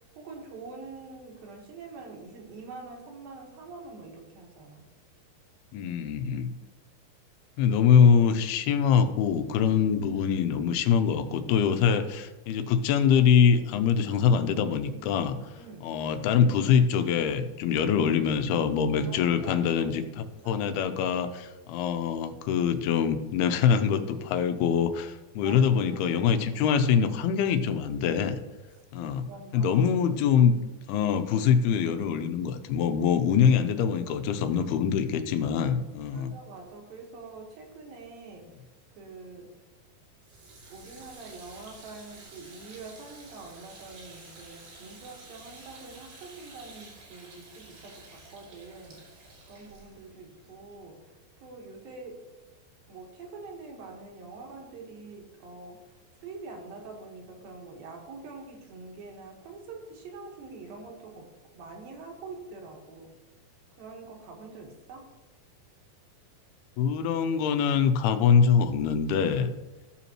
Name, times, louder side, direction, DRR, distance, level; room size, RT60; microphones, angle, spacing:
voice 1, 0.2-4.8 15.6-15.9 19.1-19.9 20.4-20.8 25.4-26.1 29.3-29.9 30.9-31.1 36.1-38.5 39.0-39.5 40.7-52.2 52.9-61.3 61.5-63.1 63.8-65.1, right 3 dB, 70° right, 1 dB, 3.2 m, -45 dB
voice 2, 5.7-6.5 7.6-15.4 15.8-28.4 28.9-29.3 29.5-30.6 30.9-36.3 66.8-69.5, left 7 dB, 85° left, 8 dB, 2.7 m, -24 dB
sound 1, 40.2-51.3, right 2 dB, 90° right, 4.6 m, -51 dB
14.5 x 7.0 x 3.0 m, 1.1 s
omnidirectional pair, 4.4 m